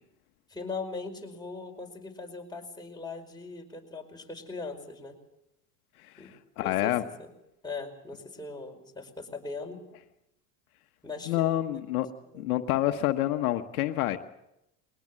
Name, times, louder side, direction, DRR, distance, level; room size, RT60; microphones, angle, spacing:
voice 1, 0.5-5.2 6.2-6.3 6.6-6.9 7.2-7.3 7.6-9.8 11.0-11.6 12.3-12.5, left 3 dB, 10° left, 0 dB, 5.0 m, -40 dB
voice 2, 6.6-7.0 11.3-12.1 12.3-14.2, left 14 dB, 85° left, 8 dB, 1.2 m, -27 dB
21.5 x 19.0 x 7.5 m, 0.85 s
supercardioid pair, 95°, 43 cm